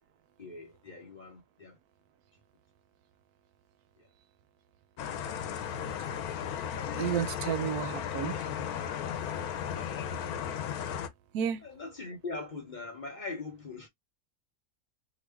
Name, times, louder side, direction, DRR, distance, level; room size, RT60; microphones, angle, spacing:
voice 1, 0.4-1.8 9.5-10.1 11.6-13.9, left 3 dB, 40° left, 0.8 m, -42 dB
sound 1, 5.0-11.1, left 8 dB, 80° left, 1.1 m, -35 dB
voice 2, 7.0-8.5 11.3-11.6, right 9 dB, 90° right, 1.1 m, -31 dB
2.9 x 2.3 x 3.3 m
omnidirectional pair, 1.6 m